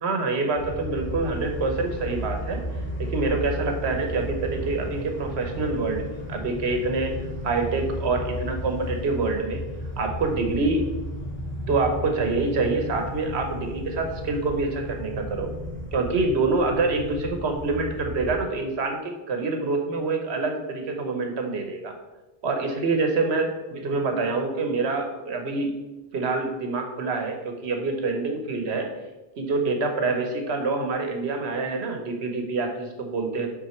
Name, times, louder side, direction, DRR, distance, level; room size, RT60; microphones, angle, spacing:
voice 1, 0.0-2.6 3.0-9.6 10.0-10.9 11.7-15.5 15.9-21.9 22.4-25.7 26.1-28.9 29.4-33.5, right 3 dB, 85° right, 4 dB, 1.2 m, -26 dB
sound 1, 0.6-18.4, equal, 10° left, 1.1 m, -34 dB
5.8 x 4.4 x 4.4 m, 1.1 s
omnidirectional pair, 1.1 m